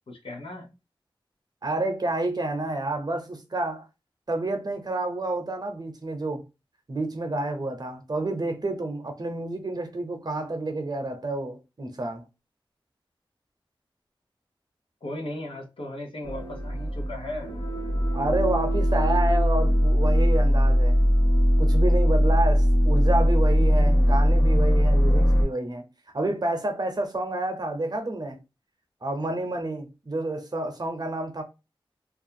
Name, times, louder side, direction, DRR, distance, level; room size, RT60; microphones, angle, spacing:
voice 1, 0.1-0.7 15.0-17.5, left 1 dB, 85° left, 0.8 m, -36 dB
voice 2, 1.6-3.9 4.3-6.4 6.9-12.2 18.1-21.0 21.6-25.9 26.1-28.4 29.0-31.4, right 2 dB, 50° right, 0.7 m, -29 dB
sound 1, 16.2-25.4, equal, 55° left, 0.7 m, -20 dB
2.4 x 2.3 x 2.7 m
wide cardioid pair, 75°, 9 cm